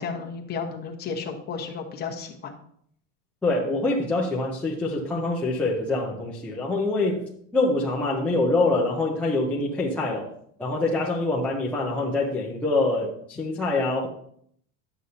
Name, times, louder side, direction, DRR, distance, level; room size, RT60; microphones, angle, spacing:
voice 1, 0.0-2.5, left 5 dB, 25° left, 1 dB, 1.0 m, -33 dB
voice 2, 3.4-7.2 7.5-10.3 10.6-14.1, left 2 dB, 5° left, -5 dB, 0.4 m, -25 dB
11.0 x 7.8 x 2.7 m, 0.66 s
cardioid pair, 175°, 40 cm